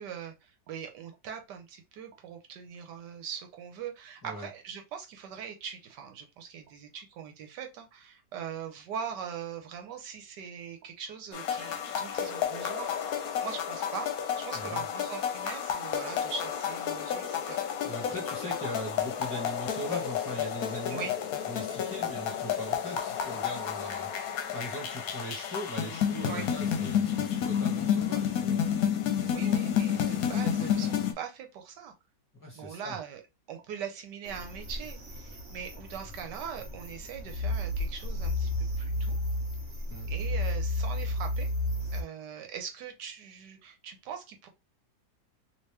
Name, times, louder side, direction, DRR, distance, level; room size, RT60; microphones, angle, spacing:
voice 1, 0.0-12.9 13.4-17.6 18.0-18.1 18.4-18.5 20.9-21.1 26.3-26.5 29.2-31.9 32.5-33.2 33.5-38.5 38.8-39.2 40.1-41.5 41.9-44.5, right 7 dB, 85° right, 1.4 m, -41 dB
sound 1, 11.3-31.1, left 8 dB, 65° left, 1.0 m, -31 dB
voice 2, 14.5-14.8 17.8-21.1 21.5-28.6 32.4-33.0 39.9-40.1, equal, 15° left, 1.1 m, -40 dB
sound 2, 34.3-42.0, left 1 dB, 45° right, 1.3 m, -33 dB
3.0 x 3.0 x 3.3 m
omnidirectional pair, 1.8 m